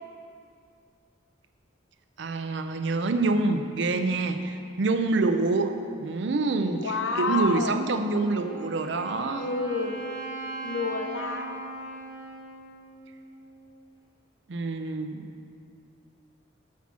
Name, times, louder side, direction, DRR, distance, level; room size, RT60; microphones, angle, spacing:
voice 1, 2.2-9.5 14.5-15.3, right 3 dB, 60° right, 7 dB, 0.5 m, -26 dB
voice 2, 6.8-7.8 9.3-10.1 10.6-11.6, left 4 dB, 70° left, 5 dB, 0.7 m, -29 dB
Wind instrument woodwind instrument, 8.0-13.8, right 2 dB, 15° right, 1.3 m, -39 dB
7.2 x 5.7 x 7.3 m, 2.4 s
head